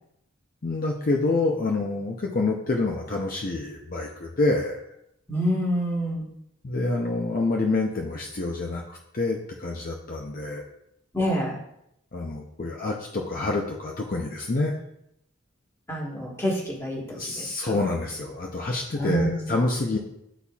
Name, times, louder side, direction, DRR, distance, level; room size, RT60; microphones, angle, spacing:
voice 1, 0.6-4.8 6.6-10.6 12.1-14.8 17.1-20.0, left 2 dB, 45° left, 0 dB, 0.6 m, -27 dB
voice 2, 5.3-6.2 11.1-11.6 15.9-17.9 18.9-19.4, equal, 15° left, -3 dB, 1.3 m, -27 dB
10.0 x 4.2 x 2.3 m, 0.78 s
head